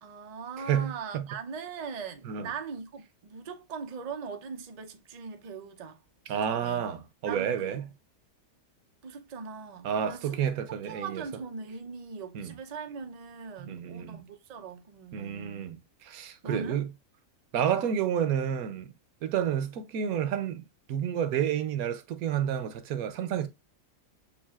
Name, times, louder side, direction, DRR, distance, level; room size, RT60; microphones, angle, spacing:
voice 1, 0.0-6.0 6.5-7.9 9.0-10.3 10.9-15.7 16.4-16.8, right 5 dB, 90° right, 0.3 m, -40 dB
voice 2, 0.7-1.3 2.2-2.5 6.3-7.9 9.8-11.2 12.3-12.5 13.6-14.2 15.1-16.9 17.5-18.9 19.2-23.5, right 9 dB, 70° right, 1.0 m, -30 dB
7.1 x 2.6 x 2.3 m
omnidirectional pair, 1.7 m